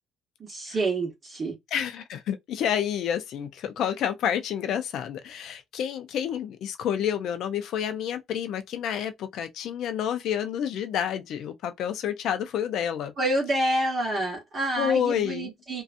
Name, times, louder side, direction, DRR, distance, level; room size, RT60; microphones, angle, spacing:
voice 1, 0.5-1.5 13.2-15.8, right 1 dB, 30° right, 1.0 m, -27 dB
voice 2, 1.7-13.1 14.8-15.5, left 9 dB, 60° left, 0.5 m, -29 dB
2.6 x 2.3 x 2.5 m
cardioid pair, 130°, 0 cm